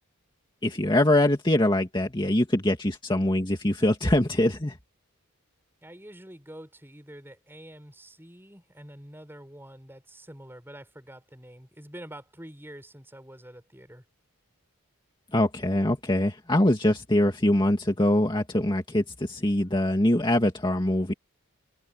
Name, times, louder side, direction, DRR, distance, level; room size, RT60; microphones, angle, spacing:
voice 1, 0.6-4.8 15.3-21.1, left 1 dB, 20° left, 2.1 m, -23 dB
voice 2, 5.8-14.0, right 1 dB, 10° right, 6.5 m, -46 dB
head